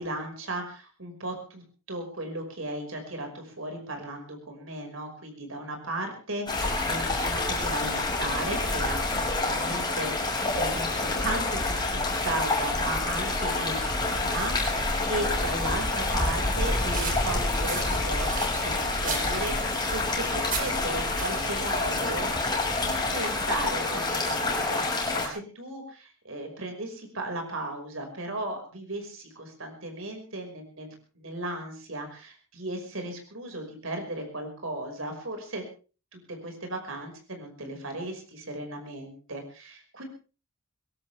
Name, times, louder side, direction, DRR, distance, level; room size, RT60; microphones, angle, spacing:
voice 1, 0.0-22.6 22.8-35.6 36.1-40.0, right 1 dB, 70° right, 4 dB, 5.5 m, -36 dB
sound 1, 6.5-25.3, left 2 dB, 20° left, 6.3 m, -28 dB
sound 2, 16.6-23.6, right 4 dB, 40° right, 3.6 m, -38 dB
23.0 x 17.5 x 3.5 m, 0.36 s
head